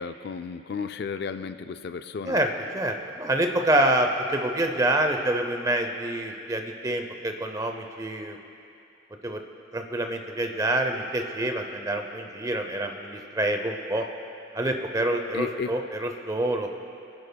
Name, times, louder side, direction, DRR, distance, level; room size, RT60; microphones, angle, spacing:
voice 1, 0.0-2.4 15.3-15.7, left 5 dB, 55° left, 10 dB, 0.3 m, -33 dB
voice 2, 2.2-8.4 9.2-9.4 9.7-14.1 14.5-16.7, right 1 dB, 20° right, 5 dB, 0.6 m, -27 dB
27.5 x 10.5 x 2.3 m, 2.6 s
head